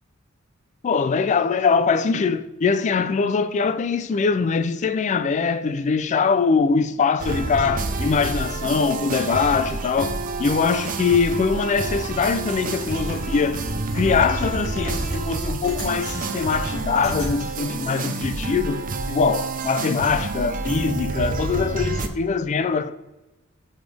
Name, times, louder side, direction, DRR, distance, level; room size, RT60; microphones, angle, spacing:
voice 1, 0.8-13.6 13.9-22.9, left 5 dB, 35° left, 0.3 m, -22 dB
sound 1, 7.2-22.1, right 3 dB, 40° right, 0.5 m, -28 dB
sound 2, 12.3-17.3, left 1 dB, 75° left, 1.9 m, -38 dB
6.0 x 5.1 x 3.4 m
head